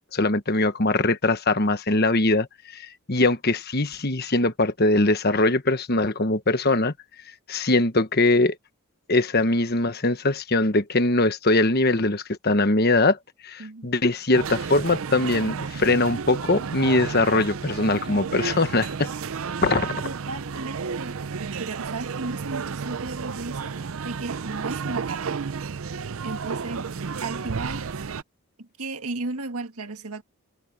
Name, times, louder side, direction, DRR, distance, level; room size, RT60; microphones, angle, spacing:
voice 1, 0.1-6.9 7.5-8.6 9.1-13.2 13.4-19.1 19.6-20.0, left 2 dB, 45° left, 1.3 m, -22 dB
voice 2, 13.6-13.9 20.0-21.2 21.6-25.4 26.2-26.9 27.2-27.9 28.6-30.2, right 3 dB, 80° right, 1.7 m, -35 dB
sound 1, 14.3-28.2, right 5 dB, 65° right, 0.5 m, -32 dB
head